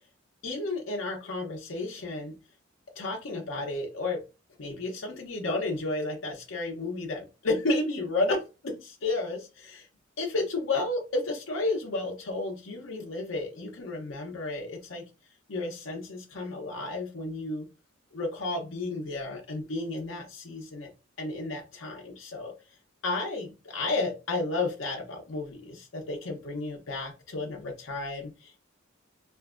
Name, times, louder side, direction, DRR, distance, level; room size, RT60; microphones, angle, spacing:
voice 1, 0.4-2.3 3.0-4.2 4.6-9.9 10.2-15.0 15.5-17.7 18.1-20.9 21.2-22.5 23.0-28.6, left 2 dB, 75° left, 0.7 m, -32 dB
4.3 x 2.6 x 2.5 m
head